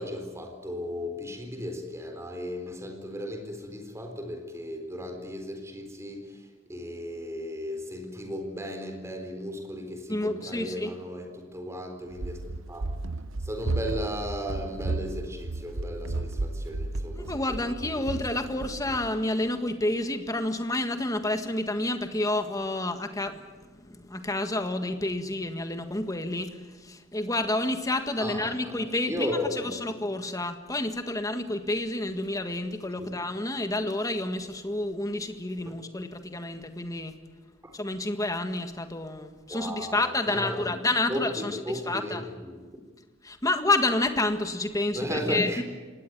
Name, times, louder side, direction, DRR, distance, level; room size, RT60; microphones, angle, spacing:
voice 1, 0.0-12.9 13.4-17.6 17.9-19.0 28.2-28.8 29.1-29.9 33.0-33.2 35.7-35.8 37.6-37.7 39.5-40.8 41.1-42.6 44.9-45.6, equal, 15° right, 4 dB, 4.0 m, -36 dB
voice 2, 10.1-10.9 17.2-37.1 37.7-42.2 43.2-45.6, left 2 dB, 15° left, 8 dB, 1.7 m, -29 dB
Run, 12.1-19.2, right 2 dB, 80° right, 0.8 m, -33 dB
25.0 x 18.5 x 9.4 m, 1.4 s
head